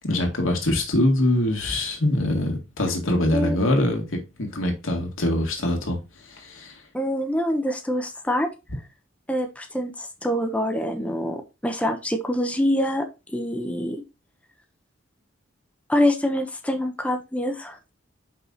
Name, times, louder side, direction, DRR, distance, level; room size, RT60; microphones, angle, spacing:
voice 1, 0.0-6.8, left 1 dB, 90° left, 2.1 m, -24 dB
voice 2, 6.9-8.5 9.3-13.1 13.3-14.0 15.9-17.8, left 1 dB, 5° left, 0.9 m, -25 dB
5.7 x 4.8 x 4.0 m
head